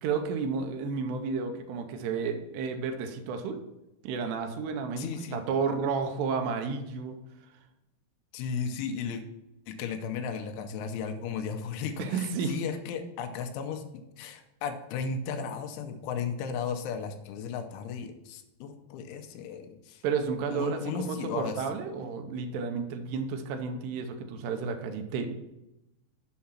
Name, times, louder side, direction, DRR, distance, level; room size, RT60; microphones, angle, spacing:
voice 1, 0.0-3.6 4.0-7.2 12.0-12.6 20.0-25.4, right 5 dB, 80° right, 6 dB, 2.7 m, -32 dB
voice 2, 5.0-5.4 8.3-9.2 9.7-13.8 14.2-20.0 20.5-21.7, left 6 dB, 85° left, 6 dB, 3.1 m, -35 dB
7.5 x 5.7 x 5.8 m, 0.92 s
omnidirectional pair, 5.5 m